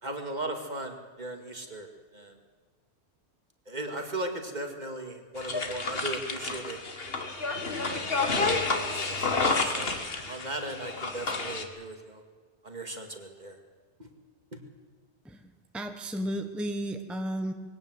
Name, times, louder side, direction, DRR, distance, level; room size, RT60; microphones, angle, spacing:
voice 1, 0.0-1.9 2.1-2.4 3.7-6.8 7.6-7.9 8.4-10.0 10.2-12.2 12.6-13.6 14.0-14.1 14.5-14.6, right 2 dB, 40° right, 5 dB, 2.3 m, -37 dB
sound 1, 5.4-11.6, left 3 dB, 55° left, 1.9 m, -30 dB
voice 2, 15.2-17.5, right 1 dB, ahead, 6 dB, 1.1 m, -33 dB
21.5 x 17.5 x 8.0 m, 1.5 s
omnidirectional pair, 1.2 m